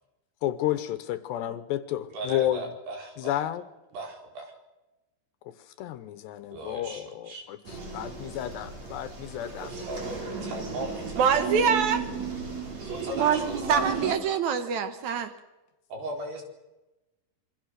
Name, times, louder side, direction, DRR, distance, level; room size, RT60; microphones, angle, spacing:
voice 1, 0.4-2.6 3.2-3.6 5.5-9.7, left 12 dB, 75° left, 2.8 m, -31 dB
voice 2, 2.1-3.4 3.9-4.5 6.5-7.5 9.6-11.5 12.8-14.1 15.9-16.4, right 1 dB, 60° right, 6.6 m, -38 dB
sound 1, 7.6-14.1, right 5 dB, 35° right, 5.2 m, -35 dB
voice 3, 11.2-12.1 13.1-13.4 13.7-15.3, right 7 dB, 85° right, 1.6 m, -24 dB
27.0 x 24.0 x 6.5 m
omnidirectional pair, 5.4 m